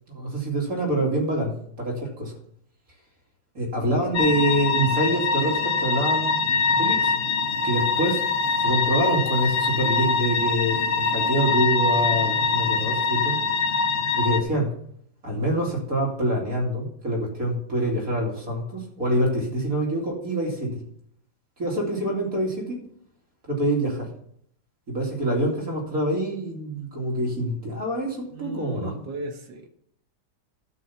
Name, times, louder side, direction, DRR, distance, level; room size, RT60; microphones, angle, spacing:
voice 1, 0.1-2.3 3.5-7.1 7.6-8.2 8.6-13.4 14.1-14.7 15.2-20.7 21.6-22.8 23.5-24.1 24.9-28.9, right 1 dB, 50° right, -2 dB, 3.0 m, -26 dB
sound 1, 4.1-14.4, left 4 dB, 35° left, 1.5 m, -23 dB
voice 2, 28.3-29.7, right 2 dB, 75° right, 4 dB, 2.0 m, -36 dB
12.5 x 5.7 x 7.1 m, 0.67 s
omnidirectional pair, 1.9 m